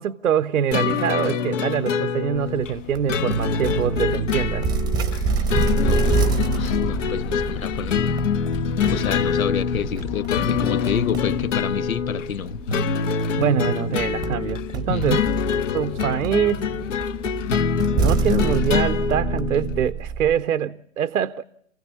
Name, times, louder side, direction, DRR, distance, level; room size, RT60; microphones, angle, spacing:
voice 1, 0.0-4.6 13.4-15.2 15.7-16.7 18.0-21.4, right 9 dB, 80° right, 0.8 m, -24 dB
sound 1, 0.7-19.9, left 6 dB, 65° left, 1.3 m, -25 dB
sound 2, 2.3-16.1, left 12 dB, 35° left, 2.7 m, -37 dB
sound 3, 2.9-20.4, right 5 dB, 10° right, 0.9 m, -28 dB
voice 2, 5.3-8.2 8.8-12.6 14.9-15.2, left 8 dB, 80° left, 0.9 m, -29 dB
28.0 x 16.0 x 8.3 m
hypercardioid pair, 135°, 41 cm